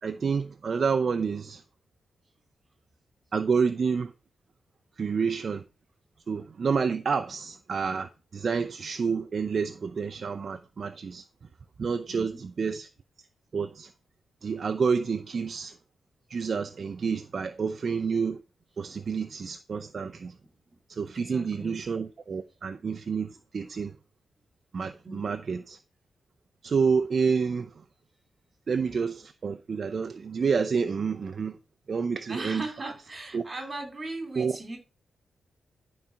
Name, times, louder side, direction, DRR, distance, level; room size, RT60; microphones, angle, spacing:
voice 1, 0.0-1.6 3.3-4.1 5.0-5.6 6.3-11.2 11.8-12.9 13.5-13.9 14.4-15.8 16.3-18.4 18.8-20.4 20.9-24.0 24.7-25.8 26.6-27.7 28.7-31.5 31.9-32.6 33.3-33.4 34.4-34.6, right 5 dB, 40° right, 0.6 m, -29 dB
voice 2, 12.1-12.4 20.4-20.8 21.1-21.8 25.0-25.4 32.3-34.8, right 2 dB, 25° right, 2.9 m, -39 dB
11.5 x 4.2 x 5.8 m
wide cardioid pair, 160°, 0 cm